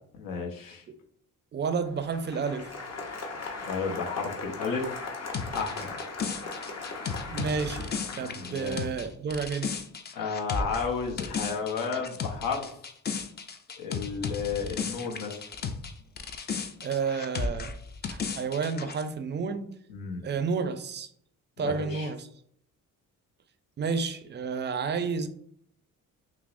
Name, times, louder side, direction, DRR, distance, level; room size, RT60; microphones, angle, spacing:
voice 1, 0.1-0.8 3.7-4.9 5.5-6.0 8.1-8.8 10.1-12.7 13.8-15.4 19.9-20.2 21.6-22.1, left 5 dB, 80° left, 0.9 m, -32 dB
voice 2, 1.5-2.7 7.3-9.7 16.8-17.7 18.1-19.7 20.2-21.1 21.6-22.2 23.8-25.3, right 5 dB, 35° right, 0.4 m, -31 dB
Applause, 1.8-8.8, left 3 dB, 50° left, 0.8 m, -39 dB
sound 1, 5.3-15.9 16.2-19.0, left 5 dB, 30° left, 0.4 m, -35 dB
5.9 x 2.0 x 2.5 m
cardioid pair, 110°, 33 cm